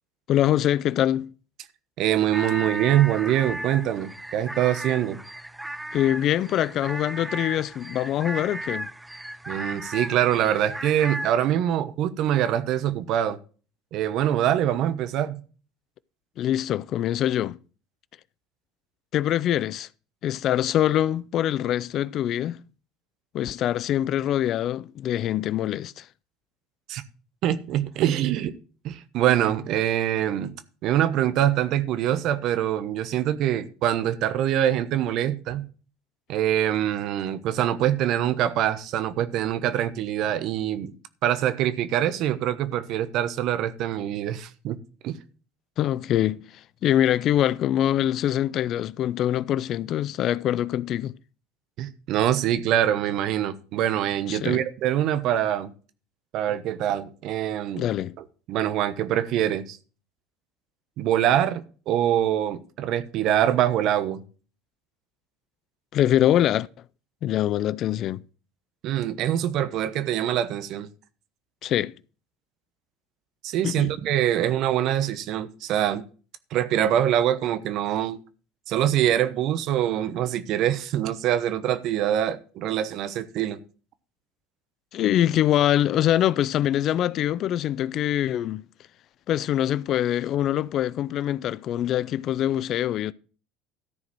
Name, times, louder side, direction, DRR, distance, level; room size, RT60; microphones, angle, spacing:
voice 1, 0.3-1.3 5.9-8.9 16.4-17.6 19.1-19.9 20.2-22.6 23.3-26.1 45.8-46.4 46.8-51.1 54.3-54.6 57.8-58.1 65.9-66.7 67.2-68.2 71.6-71.9 73.6-73.9 84.9-88.6 89.3-93.1, left 12 dB, 55° left, 0.4 m, -24 dB
voice 2, 2.0-5.2 9.5-13.4 13.9-15.4 26.9-27.0 27.4-28.5 28.8-30.5 30.8-35.6 36.3-40.9 41.2-44.8 45.0-45.1 51.8-55.7 56.3-57.9 58.5-59.8 61.0-64.2 68.8-70.9 73.4-76.0 76.5-78.2 78.7-83.6, right 11 dB, 60° right, 1.0 m, -24 dB
sound 1, 2.3-11.3, right 1 dB, 5° right, 0.7 m, -35 dB
13.5 x 4.9 x 6.0 m
hypercardioid pair, 75°, 0 cm